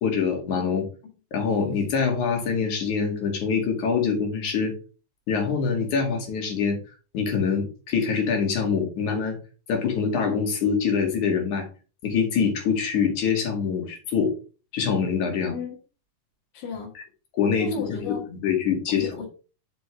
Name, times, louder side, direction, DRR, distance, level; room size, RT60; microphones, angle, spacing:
voice 1, 0.0-0.9 1.3-4.8 5.3-6.8 7.1-9.4 9.7-11.7 12.0-14.3 14.7-15.5 17.4-19.1, left 6 dB, 65° left, 3.7 m, -24 dB
voice 2, 16.5-16.9 17.6-18.3 18.9-19.3, left 5 dB, 80° left, 3.5 m, -34 dB
7.6 x 6.9 x 3.4 m
omnidirectional pair, 3.8 m